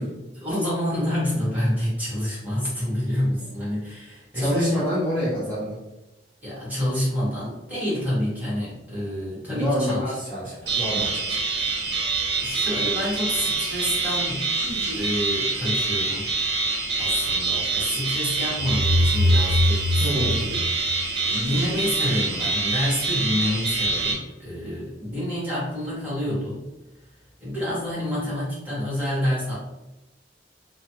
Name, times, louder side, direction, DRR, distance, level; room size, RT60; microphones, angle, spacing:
voice 1, 0.0-4.8 6.4-10.5 12.4-14.4 14.9-16.3 17.0-26.7 27.4-29.5, left 1 dB, 10° right, -8 dB, 1.4 m, -28 dB
voice 2, 4.3-5.8 9.5-11.6 20.0-20.4, equal, 10° left, -10 dB, 0.7 m, -27 dB
sound 1, 10.7-24.1, right 3 dB, 65° right, 0.8 m, -26 dB
sound 2, 18.6-21.5, left 1 dB, 45° left, 0.8 m, -23 dB
3.1 x 2.2 x 2.7 m, 0.99 s
head